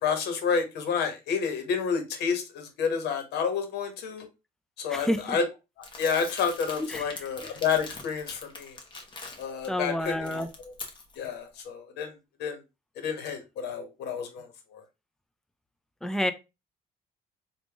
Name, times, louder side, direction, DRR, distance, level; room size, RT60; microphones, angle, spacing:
voice 1, 0.0-4.3 4.8-5.4 5.8-8.8 9.4-10.7 11.2-12.1 12.4-12.6 13.0-14.8, left 6 dB, 75° left, 5 dB, 1.2 m, -30 dB
voice 2, 4.9-5.4 6.9-7.0 9.7-10.5 16.0-16.3, left 1 dB, 5° left, 9 dB, 0.5 m, -28 dB
Crumpling crinkling, 5.8-9.7 10.1-11.3, left 3 dB, 30° left, 1.0 m, -43 dB
3.6 x 2.5 x 3.5 m, 0.26 s
cardioid pair, 110°, 17 cm